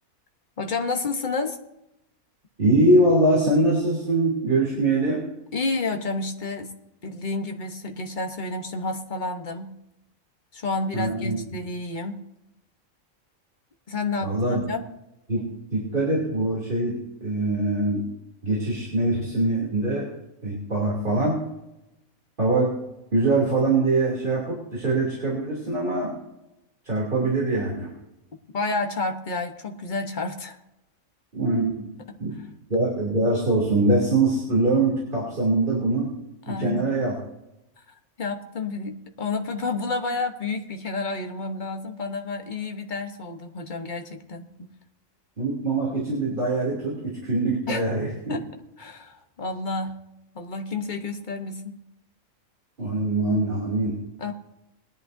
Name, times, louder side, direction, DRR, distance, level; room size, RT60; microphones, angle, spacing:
voice 1, 0.6-1.6 5.5-6.7 7.0-9.8 10.5-12.2 13.9-14.8 28.5-30.6 32.1-32.2 36.5-36.9 38.2-44.7 47.7-47.8 48.3-48.4 48.8-50.0 50.3-51.8 54.2-54.3, left 3 dB, 35° left, 4 dB, 1.2 m, -30 dB
voice 2, 2.6-5.2 10.9-11.4 14.2-14.6 15.3-18.0 18.4-20.1 20.4-21.4 22.4-22.7 23.1-26.1 26.8-27.9 31.3-31.9 32.2-32.4 32.7-36.1 36.5-37.1 45.4-48.4 52.8-54.0, right 2 dB, 40° right, -5 dB, 3.2 m, -23 dB
20.5 x 11.0 x 2.7 m, 0.89 s
omnidirectional pair, 1.4 m